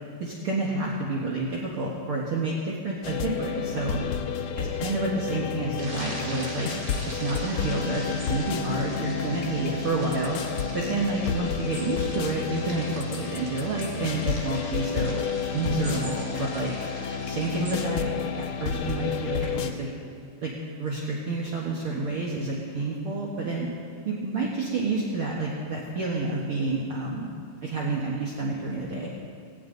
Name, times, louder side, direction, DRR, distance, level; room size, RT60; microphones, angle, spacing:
voice 1, 0.2-4.0 4.6-6.7 7.1-15.2 15.5-16.7 17.3-19.9 20.4-20.5 20.8-23.7 24.1-27.3 27.6-29.1, right 3 dB, 50° right, -3 dB, 2.2 m, -29 dB
sound 1, 3.0-19.7, left 7 dB, 75° left, 1.2 m, -31 dB
sound 2, 5.8-17.7, right 1 dB, 30° right, 2.7 m, -42 dB
19.0 x 17.5 x 4.0 m, 2.2 s
omnidirectional pair, 3.4 m